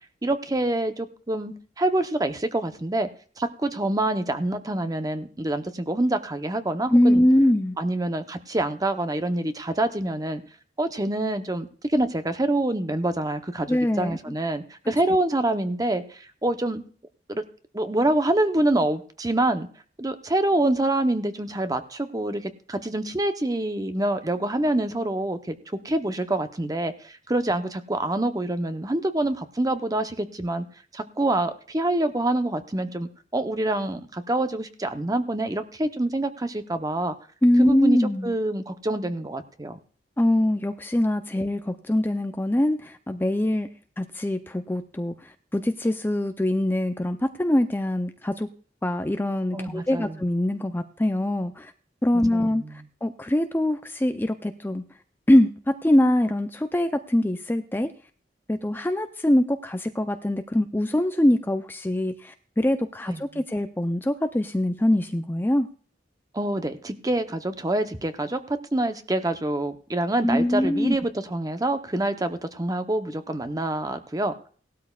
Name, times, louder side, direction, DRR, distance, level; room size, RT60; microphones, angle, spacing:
voice 1, 0.2-3.1 3.4-7.2 7.8-10.4 10.8-16.8 17.3-17.4 17.7-19.7 20.0-25.6 25.8-30.6 30.9-37.2 37.6-39.8 49.5-50.2 52.3-52.7 63.1-63.4 66.3-74.3, right 1 dB, 20° right, 9 dB, 0.8 m, -26 dB
voice 2, 6.9-7.8 13.7-14.2 37.4-38.3 40.2-43.7 44.0-48.5 48.8-51.7 52.0-52.6 53.0-54.8 55.3-57.9 58.5-65.7 70.2-71.0, left 1 dB, 10° left, 8 dB, 0.5 m, -23 dB
18.0 x 12.5 x 2.4 m, 0.42 s
head